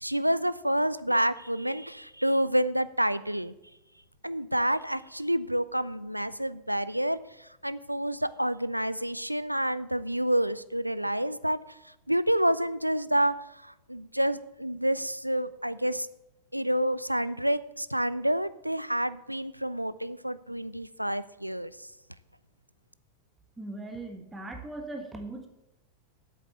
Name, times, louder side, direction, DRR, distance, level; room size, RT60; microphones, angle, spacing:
voice 1, 0.0-3.5 4.2-11.6 11.8-16.1 16.5-21.9, equal, 90° right, 16 dB, 0.4 m, -28 dB
voice 2, 23.6-25.5, right 2 dB, 10° right, 5 dB, 1.5 m, -39 dB
8.4 x 7.4 x 8.1 m, 0.91 s
figure-of-eight pair, 90°, 0 cm